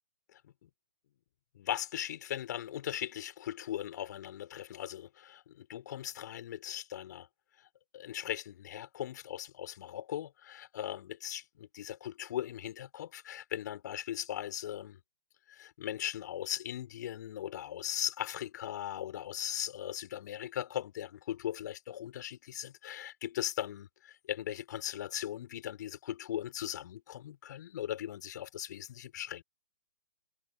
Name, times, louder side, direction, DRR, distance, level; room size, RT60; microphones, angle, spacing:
voice 1, 0.3-0.7 1.5-7.3 7.6-15.0 15.5-29.4, left 11 dB, 45° left, 5.0 m, -39 dB
figure-of-eight pair, 125°, 14 cm